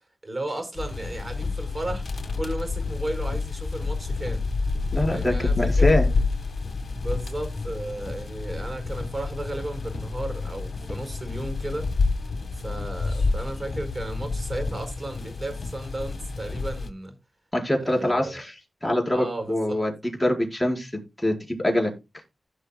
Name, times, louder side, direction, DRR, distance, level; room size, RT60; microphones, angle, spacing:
voice 1, 0.2-2.0 2.3-4.4 5.1-6.1 7.0-11.9 12.5-17.2 17.8-18.4 19.1-19.8, right 1 dB, 35° right, 4.9 m, -34 dB
sound 1, 0.8-16.9, left 3 dB, 65° left, 1.5 m, -28 dB
voice 2, 4.9-6.1 17.5-21.9, left 1 dB, 10° left, 4.7 m, -25 dB
16.0 x 6.3 x 2.3 m
cardioid pair, 50°, 0 cm